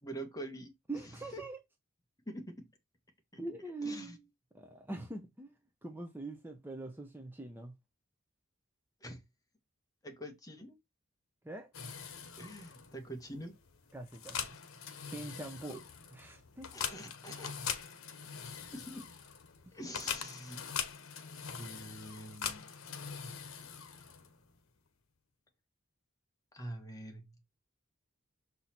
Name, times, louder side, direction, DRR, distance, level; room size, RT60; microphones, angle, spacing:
voice 1, 0.0-0.7 1.3-1.4 2.3-2.6 3.8-4.2 9.0-9.2 10.0-10.8 12.4-13.5 15.7-15.8 16.7-17.6 18.7-19.1 19.7-20.6 21.6-22.7 26.5-27.3, right 1 dB, 15° left, 1.7 m, -45 dB
voice 2, 0.9-1.6 3.4-4.2 4.5-5.5 5.8-7.7 11.4-11.7 13.9-14.6 15.1-15.8 16.1-16.7 19.7-19.8, right 2 dB, 10° right, 0.9 m, -43 dB
sound 1, 11.7-24.5, left 7 dB, 85° left, 1.1 m, -43 dB
6.7 x 4.1 x 4.4 m
head